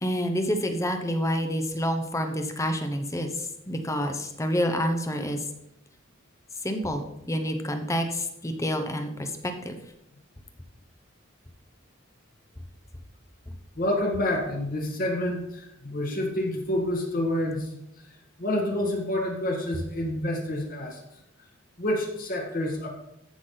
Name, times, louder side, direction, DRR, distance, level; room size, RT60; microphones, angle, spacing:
voice 1, 0.0-5.4 6.6-9.8, equal, 15° left, 6 dB, 0.9 m, -28 dB
voice 2, 13.8-17.7 18.4-21.0 21.8-22.9, left 1 dB, 45° left, 1 dB, 1.9 m, -28 dB
14.0 x 6.0 x 4.0 m, 0.82 s
head